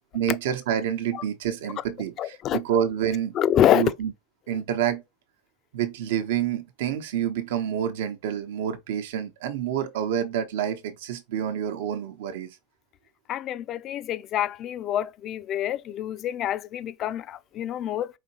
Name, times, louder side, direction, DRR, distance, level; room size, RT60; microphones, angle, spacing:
voice 1, 0.1-3.3 3.7-4.1 4.5-5.0 5.7-12.5, right 9 dB, 80° right, 0.9 m, -28 dB
voice 2, 2.2-2.6 3.3-3.8 13.3-18.1, left 11 dB, 35° left, 0.3 m, -26 dB
4.9 x 3.1 x 2.9 m
supercardioid pair, 145°, 0 cm